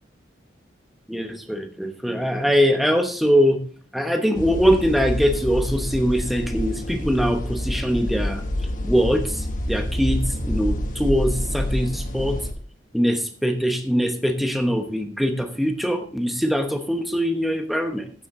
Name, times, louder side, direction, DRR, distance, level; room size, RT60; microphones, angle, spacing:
voice 1, 1.1-3.6 3.9-8.4 8.8-12.4 12.9-18.1, equal, ahead, 5 dB, 1.0 m, -22 dB
sound 1, 4.3-12.5, left 1 dB, 45° left, 1.1 m, -27 dB
14.5 x 7.3 x 3.7 m, 0.44 s
head